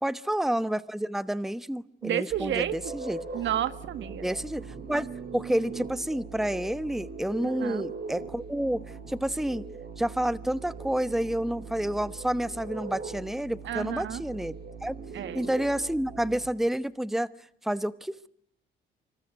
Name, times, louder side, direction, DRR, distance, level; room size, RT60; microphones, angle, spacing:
voice 1, 0.0-3.2 4.2-9.6 10.0-14.5 14.8-15.0 15.3-17.3 17.6-18.3, right 1 dB, ahead, 14 dB, 1.1 m, -29 dB
voice 2, 2.0-2.8 3.3-4.3 7.4-7.8 13.6-14.2 15.1-15.5, right 11 dB, 70° right, 12 dB, 1.7 m, -31 dB
sound 1, 2.3-16.5, right 5 dB, 55° right, 5.5 m, -40 dB
26.0 x 25.5 x 8.1 m, 0.69 s
cardioid pair, 90°, 20 cm